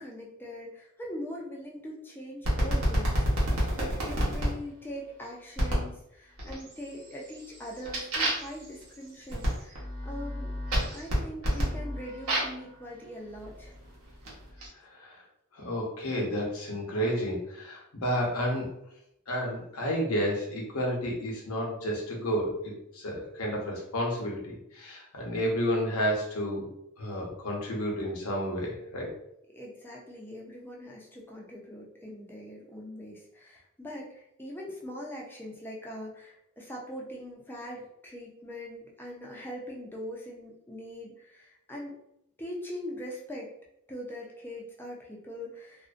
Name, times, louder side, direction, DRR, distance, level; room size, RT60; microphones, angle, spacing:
voice 1, 0.0-10.5 10.9-13.7 29.5-42.0 42.4-43.5 43.9-45.9, equal, 10° left, -2 dB, 0.4 m, -42 dB
sound 1, 2.4-4.5 5.6-5.9 6.4-6.9 7.2-12.6 13.4-14.7, equal, 70° right, 0.9 m, -29 dB
voice 2, 14.9-15.2 15.5-18.7 19.3-26.7 27.0-29.1, equal, 75° left, -2 dB, 0.7 m, -31 dB
2.5 x 2.1 x 2.4 m, 0.78 s
head